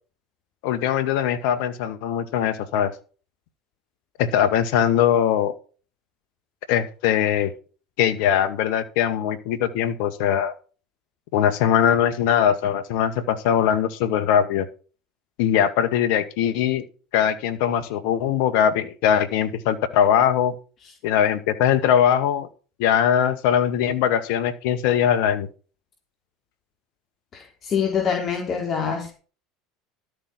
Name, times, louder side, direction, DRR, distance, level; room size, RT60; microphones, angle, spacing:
voice 1, 0.6-2.9 4.2-5.5 6.7-7.5 8.0-10.6 11.3-14.7 15.4-16.9 17.1-20.5 21.0-22.5 22.8-25.5, left 9 dB, 70° left, 11 dB, 2.0 m, -21 dB
voice 2, 27.3-29.1, left 7 dB, 40° left, 0 dB, 4.4 m, -25 dB
13.0 x 8.7 x 4.5 m, 0.36 s
hypercardioid pair, 80°, 0 cm